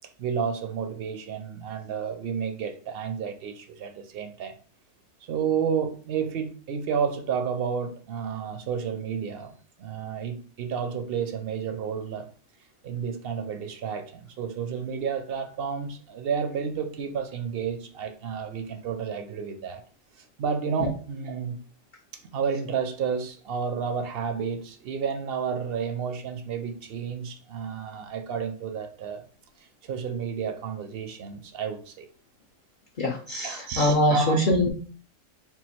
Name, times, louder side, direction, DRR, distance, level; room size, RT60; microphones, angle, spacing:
voice 1, 0.2-4.5 5.3-9.5 9.8-12.3 12.8-19.8 20.2-21.6 22.1-29.2 29.8-32.1 33.4-34.4, right 6 dB, 65° right, 0.6 m, -31 dB
voice 2, 33.0-34.7, left 1 dB, 60° left, 0.5 m, -23 dB
3.7 x 2.4 x 4.2 m
omnidirectional pair, 1.4 m